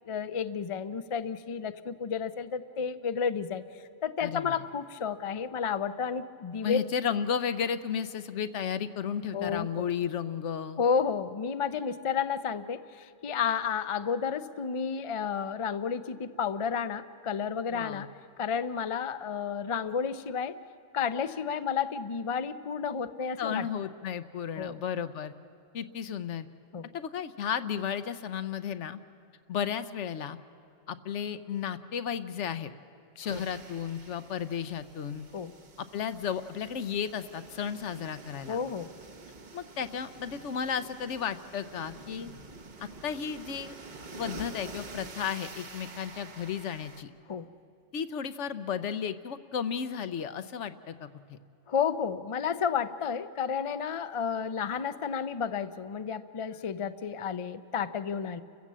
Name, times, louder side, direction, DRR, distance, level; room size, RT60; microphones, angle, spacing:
voice 1, 0.1-3.6 4.0-6.9 9.3-9.7 10.8-18.1 18.4-20.6 20.9-23.7 24.6-24.8 26.7-26.9 33.3-33.4 35.3-35.5 38.5-38.9 47.3-47.5 51.7-58.4, left 6 dB, 45° left, 11 dB, 0.4 m, -31 dB
voice 2, 4.2-4.6 6.6-10.8 17.7-18.0 23.4-25.3 25.7-26.5 26.9-29.0 29.5-30.4 30.9-32.7 33.2-35.2 35.8-38.6 39.5-42.3 42.8-43.8 44.2-47.1 47.9-51.4, left 8 dB, 70° left, 12 dB, 1.0 m, -33 dB
sound 1, 33.3-47.0, right 3 dB, 40° right, 1.1 m, -48 dB
30.0 x 15.5 x 7.4 m, 2.5 s
omnidirectional pair, 1.3 m